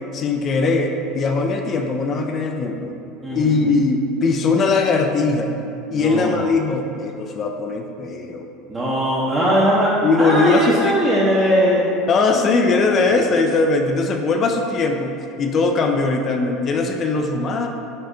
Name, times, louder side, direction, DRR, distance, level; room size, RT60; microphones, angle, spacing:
voice 1, 0.1-2.9 3.4-5.5 5.9-8.5 10.0-10.9 12.1-17.7, left 3 dB, 40° left, 3 dB, 0.3 m, -20 dB
voice 2, 3.2-3.6 5.9-6.4 8.7-9.9 10.1-11.9 12.3-13.1, equal, 20° right, -8 dB, 0.7 m, -20 dB
5.2 x 2.6 x 2.5 m, 2.7 s
hypercardioid pair, 75°, 0 cm